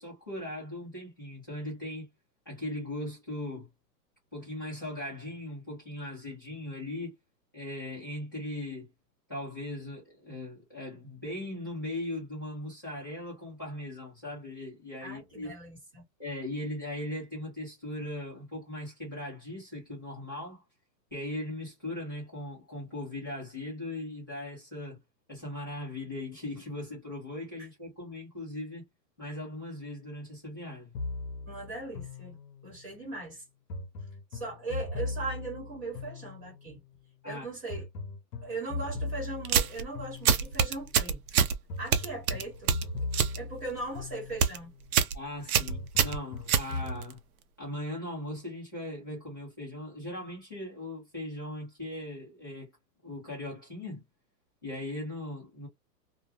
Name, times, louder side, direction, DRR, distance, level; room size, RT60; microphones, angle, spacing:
voice 1, 0.0-2.1 2.5-3.7 4.3-7.1 7.5-8.9 9.3-15.5 16.2-20.6 21.1-25.0 25.3-28.8 29.2-30.9 37.2-37.5 45.1-47.2 47.6-52.7 53.0-54.0 54.6-55.7, left 1 dB, 15° left, 0.5 m, -39 dB
voice 2, 15.0-16.0 31.5-32.4 32.6-33.4 34.3-36.8 37.2-37.9 38.4-41.2 41.8-42.7 43.0-43.1 43.4-44.7, right 2 dB, 20° right, 1.1 m, -39 dB
sound 1, 30.9-32.8 33.7-36.8 37.7-40.8 41.7-44.7 45.7-47.1, left 2 dB, 75° left, 0.7 m, -39 dB
sound 2, 39.4-39.8 40.3-41.6 41.9-43.4 43.7-44.0 44.3-44.6 44.9-45.2 45.5-47.1, right 7 dB, 60° right, 0.5 m, -25 dB
2.2 x 2.2 x 2.6 m
hypercardioid pair, 180°, 50 cm